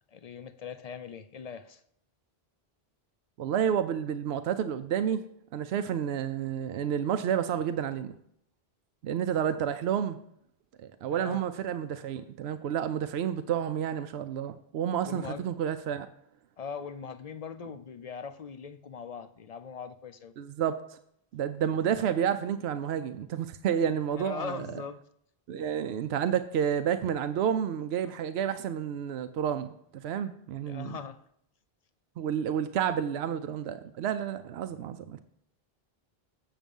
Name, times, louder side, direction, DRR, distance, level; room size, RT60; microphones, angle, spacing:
voice 1, 0.1-1.8 11.1-11.4 15.0-15.5 16.6-20.3 24.1-25.0 30.7-31.2, left 6 dB, 50° left, 11 dB, 0.5 m, -40 dB
voice 2, 3.4-5.2 5.5-8.2 9.0-10.2 11.0-16.1 20.4-20.8 21.3-24.8 25.5-31.0 32.2-35.2, right 9 dB, 80° right, 9 dB, 0.8 m, -30 dB
7.5 x 7.1 x 5.3 m, 0.70 s
omnidirectional pair, 1.1 m